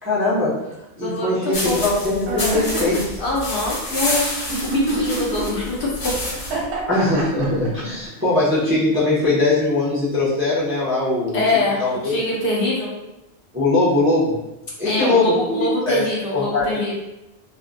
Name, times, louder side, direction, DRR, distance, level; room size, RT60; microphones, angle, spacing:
voice 1, 0.0-0.6 1.0-3.2 6.9-11.4 11.8-12.2 13.5-14.4 14.8-16.0 16.3-16.7, left 2 dB, 15° right, -9 dB, 0.5 m, -20 dB
voice 2, 1.0-1.8 3.2-6.2 11.3-12.9 14.8-16.9, left 2 dB, 60° left, -4 dB, 0.8 m, -24 dB
sound 1, 1.5-6.6, left 1 dB, 85° left, 1.1 m, -28 dB
sound 2, 2.3-3.0 4.5-5.4 6.3-7.7, right 2 dB, 65° right, 0.8 m, -26 dB
2.4 x 2.1 x 2.5 m, 0.94 s
omnidirectional pair, 1.1 m